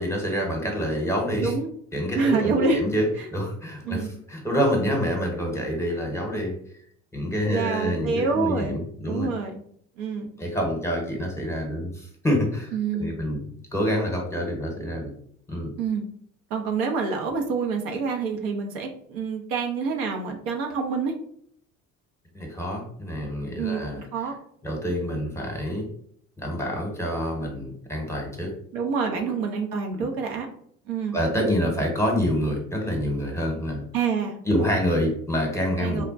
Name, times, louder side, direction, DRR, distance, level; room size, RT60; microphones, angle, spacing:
voice 1, 0.0-1.5 1.9-6.5 7.1-9.3 10.4-13.4 13.7-15.1 15.5-15.7 22.3-24.0 24.6-25.8 26.4-28.5 29.2-29.3 29.9-30.1 31.1-33.9 34.4-36.0, equal, 5° left, 0 dB, 1.0 m, -27 dB
voice 2, 2.2-2.8 3.2-3.3 3.8-4.1 7.5-8.8 9.0-9.6 10.0-10.3 12.7-13.1 15.8-16.0 16.5-21.1 23.6-24.3 28.7-30.5 30.9-31.2 33.9-34.7 35.8-36.0, right 5 dB, 65° right, 3 dB, 0.7 m, -27 dB
3.4 x 2.1 x 2.5 m, 0.63 s
hypercardioid pair, 65°, 41 cm